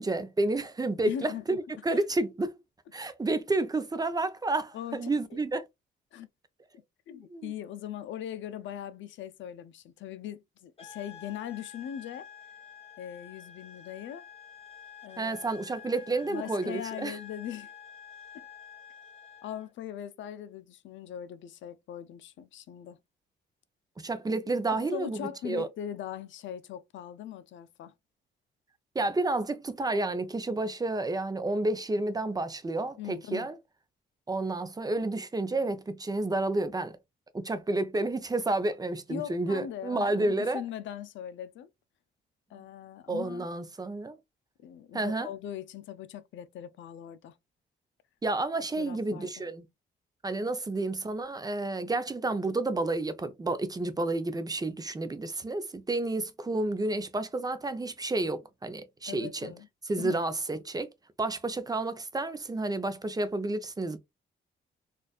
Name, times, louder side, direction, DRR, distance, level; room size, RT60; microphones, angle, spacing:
voice 1, 0.0-2.5 2.9-5.7 7.3-7.5 15.2-17.2 24.0-25.7 28.9-33.6 34.3-37.0 37.3-40.6 42.5-42.6 43.1-44.2 44.9-45.3 48.2-49.6 50.2-59.5 59.9-60.9 61.2-64.0, right 2 dB, 20° right, 0.6 m, -30 dB
voice 2, 1.0-1.6 1.9-2.0 4.7-5.4 6.1-6.3 6.7-12.3 13.0-14.3 15.0-15.6 16.2-17.7 18.3-18.4 19.4-23.0 24.8-27.9 33.0-33.5 39.1-41.7 42.5-43.5 44.6-47.4 48.8-49.4 59.1-59.7 59.9-60.2, left 10 dB, 70° left, 0.5 m, -40 dB
sound 1, 10.8-19.7, left 7 dB, 30° left, 1.2 m, -49 dB
4.0 x 2.5 x 2.3 m
cardioid pair, 90°, 20 cm